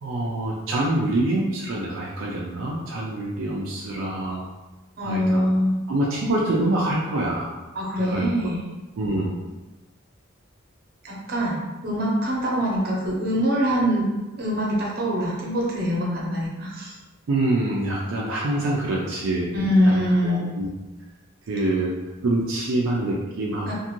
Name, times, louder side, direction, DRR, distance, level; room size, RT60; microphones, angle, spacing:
voice 1, 0.0-4.5 5.0-5.5 5.9-7.5 8.0-8.3 9.0-9.3 17.3-19.5 19.8-20.0 20.2-20.7 21.5-21.9 22.2-23.7, right 1 dB, 80° right, -4 dB, 0.4 m, -25 dB
voice 2, 5.0-5.8 7.7-8.7 11.0-11.6 11.8-14.1 14.4-16.9 19.5-20.4 23.7-23.8, equal, 50° right, -4 dB, 0.8 m, -23 dB
2.6 x 2.5 x 2.9 m, 1.1 s
head